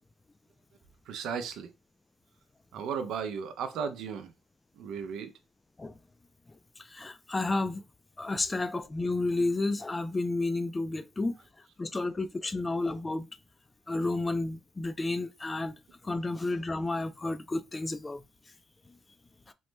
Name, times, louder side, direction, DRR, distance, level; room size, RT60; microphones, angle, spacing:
voice 1, 1.1-1.7 2.7-4.3 4.7-5.3, right 6 dB, 80° right, 0.5 m, -35 dB
voice 2, 6.8-7.8 8.2-11.4 11.8-13.3 13.9-15.8 16.0-18.2 19.5-19.6, left 2 dB, 20° left, 0.3 m, -31 dB
3.1 x 2.1 x 3.1 m
cardioid pair, 90°, 0 cm